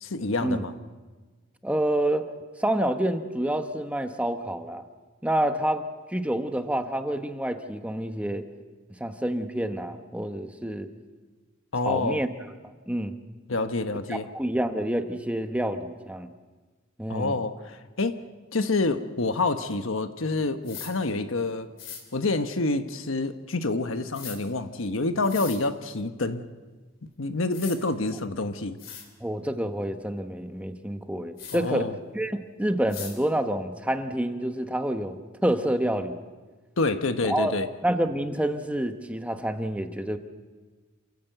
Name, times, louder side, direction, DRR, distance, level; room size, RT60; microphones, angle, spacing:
voice 1, 0.0-0.7 11.7-12.2 13.5-14.3 17.1-17.5 18.0-18.2 18.5-21.7 22.1-26.4 27.2-28.8 31.5-31.9 36.8-37.7, left 3 dB, 85° left, 9 dB, 1.2 m, -27 dB
voice 2, 1.6-2.3 2.6-4.8 5.2-8.4 9.0-10.9 11.8-12.3 12.6-13.1 14.1-16.3 17.0-17.4 29.2-36.2 37.2-37.5 37.8-40.2, right 1 dB, 5° right, 7 dB, 1.1 m, -28 dB
sound 1, 20.6-20.9 21.8-22.0 24.1-24.4 25.2-25.6 27.1-27.2 27.5-27.8 28.4-28.5 28.8-29.1 31.4-31.6 32.9-33.2, left 8 dB, 70° left, 3.8 m, -39 dB
28.0 x 15.0 x 8.0 m, 1.3 s
head